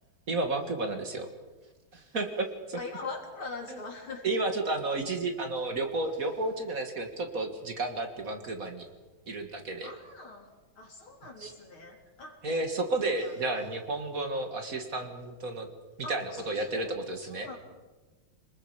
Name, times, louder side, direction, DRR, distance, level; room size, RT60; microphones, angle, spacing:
voice 1, 0.3-1.3 1.9-2.8 3.7-3.8 4.2-8.9 9.3-9.9 11.4-11.5 12.4-15.7 16.1-17.5, right 2 dB, 45° right, 5 dB, 2.2 m, -32 dB
voice 2, 2.8-4.3 9.8-10.5 10.8-12.4 13.2-13.3 16.0-16.9 17.2-17.6, left 3 dB, 90° left, 1 dB, 4.2 m, -42 dB
28.0 x 20.5 x 5.0 m, 1.2 s
omnidirectional pair, 2.2 m